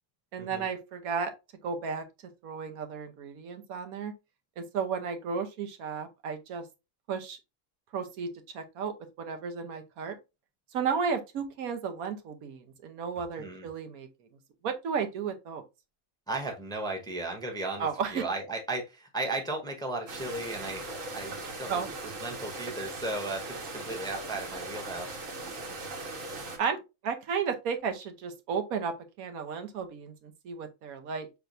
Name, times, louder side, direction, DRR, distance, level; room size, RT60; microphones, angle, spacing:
voice 1, 0.3-1.3 1.6-2.0 2.4-4.1 4.6-6.6 7.1-7.4 7.9-8.3 8.5-10.2 10.7-14.1 14.6-15.6 17.8-18.2 21.7-21.9 26.6-31.3, right 6 dB, 85° right, 1.2 m, -33 dB
voice 2, 16.3-20.9 21.1-21.8 22.2-25.1, right 2 dB, 5° left, 0.7 m, -35 dB
sound 1, 20.1-26.6, right 2 dB, 65° right, 1.5 m, -39 dB
5.8 x 3.4 x 2.6 m
omnidirectional pair, 1.5 m